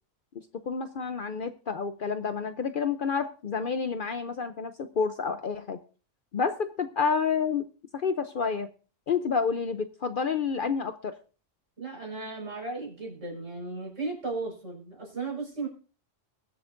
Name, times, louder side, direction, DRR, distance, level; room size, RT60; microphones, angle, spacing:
voice 1, 0.7-5.8 6.3-7.6 8.0-8.7 9.1-11.1, left 5 dB, 55° left, 10 dB, 0.7 m, -29 dB
voice 2, 11.8-15.7, right 3 dB, 70° right, -1 dB, 5.4 m, -35 dB
22.0 x 7.9 x 2.6 m, 0.37 s
omnidirectional pair, 1.3 m